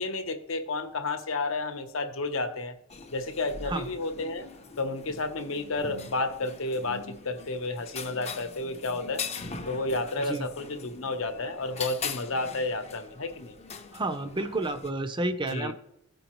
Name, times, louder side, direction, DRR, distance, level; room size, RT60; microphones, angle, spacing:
voice 1, 0.0-2.8 3.1-4.5 4.8-9.2 9.7-13.5 15.5-15.7, left 2 dB, 70° left, 8 dB, 0.8 m, -31 dB
sound 1, 2.9-14.9, left 5 dB, 30° left, 0.6 m, -41 dB
voice 2, 13.9-15.7, right 2 dB, 25° right, 9 dB, 0.6 m, -30 dB
15.0 x 5.2 x 3.0 m, 0.77 s
head